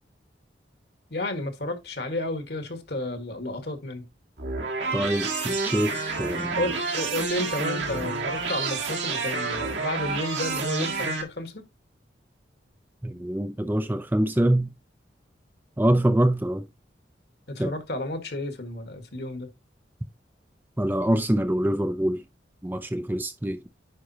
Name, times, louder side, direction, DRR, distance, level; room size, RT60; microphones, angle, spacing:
voice 1, 1.1-4.1 6.5-11.6 17.5-19.5, left 2 dB, 60° left, 1.5 m, -32 dB
sound 1, 4.4-11.2, right 4 dB, 75° right, 1.8 m, -29 dB
voice 2, 4.9-6.6 13.0-14.7 15.8-16.7 17.6-17.7 20.8-22.2 22.6-23.7, right 1 dB, 10° right, 0.4 m, -25 dB
9.6 x 5.0 x 2.8 m
head